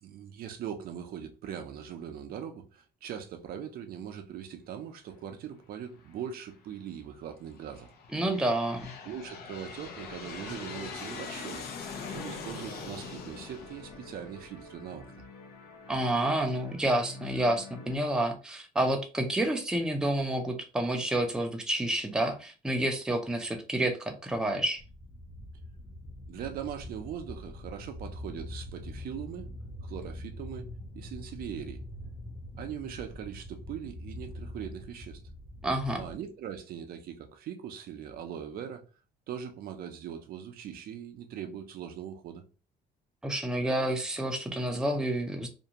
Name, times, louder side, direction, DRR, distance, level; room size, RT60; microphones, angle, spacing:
voice 1, 0.0-7.9 9.0-11.6 12.1-15.1 26.3-29.5 29.8-30.7 30.9-31.8 32.6-35.2 36.0-38.8 39.3-42.4, right 9 dB, 60° right, 0.5 m, -41 dB
Aircraft, 6.0-6.6 7.3-14.8, left 5 dB, 65° left, 0.6 m, -43 dB
voice 2, 8.1-8.9 15.9-24.8 35.6-36.0 43.2-45.5, right 1 dB, 5° right, 0.5 m, -29 dB
sound 1, 10.4-18.0, left 3 dB, 85° left, 1.0 m, -49 dB
sound 2, 24.8-36.2, left 1 dB, 35° left, 0.8 m, -44 dB
2.5 x 2.2 x 2.8 m
cardioid pair, 110°, 17 cm